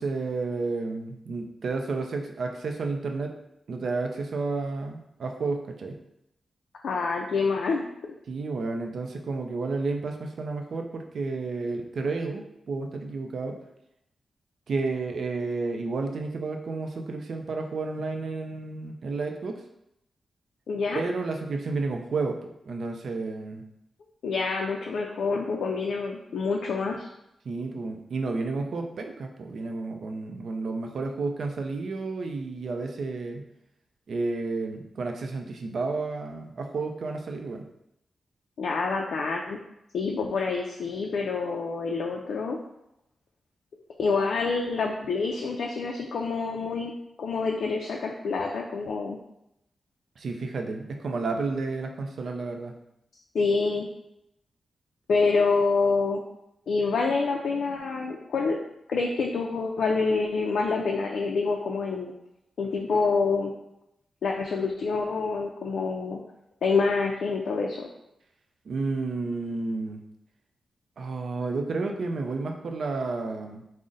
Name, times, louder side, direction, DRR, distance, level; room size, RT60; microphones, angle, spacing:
voice 1, 0.0-3.3 3.7-6.0 8.3-13.6 14.7-19.6 20.9-23.6 27.4-33.5 34.1-37.7 50.2-52.7 68.6-70.0 71.0-73.6, right 3 dB, 55° right, 3 dB, 0.4 m, -31 dB
voice 2, 6.8-7.9 20.7-21.0 24.2-27.1 38.6-39.6 39.9-42.6 44.0-46.9 47.2-49.2 53.3-53.9 55.1-56.2 56.7-58.6 58.9-62.1 62.6-63.5 64.2-66.2 66.6-67.9, left 4 dB, 75° left, 0 dB, 0.3 m, -27 dB
3.8 x 2.0 x 3.8 m, 0.82 s
wide cardioid pair, 170°, 0 cm